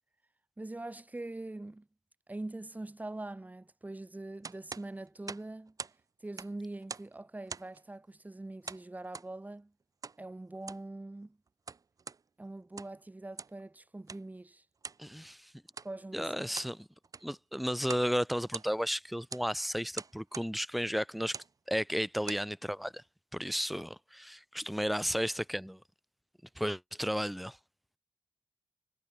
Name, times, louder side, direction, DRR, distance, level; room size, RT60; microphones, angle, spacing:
voice 1, 0.6-1.9 2.3-5.7 6.2-9.7 10.2-11.4 12.4-14.6 15.8-16.3, right 2 dB, 20° right, 2.6 m, -43 dB
Old Electric Stove Stove Dials, 4.4-6.0 6.3-7.2 7.5-7.8 8.7-9.3 10.0-10.2 10.6-10.9 11.5-12.2 12.6-13.0 13.4-13.6 14.1-14.3 14.8-15.0 15.7-15.9 16.3-16.8 17.0-17.4 17.8-18.1 18.4-18.9 19.3-19.5 19.9-20.5 21.2-21.5 22.0-22.5, right 5 dB, 45° right, 0.9 m, -44 dB
voice 2, 15.0-15.5 16.1-16.9 17.2-21.4 21.7-23.0 23.3-25.8 26.6-27.6, equal, ahead, 0.9 m, -33 dB
cardioid pair, 70°, 8 cm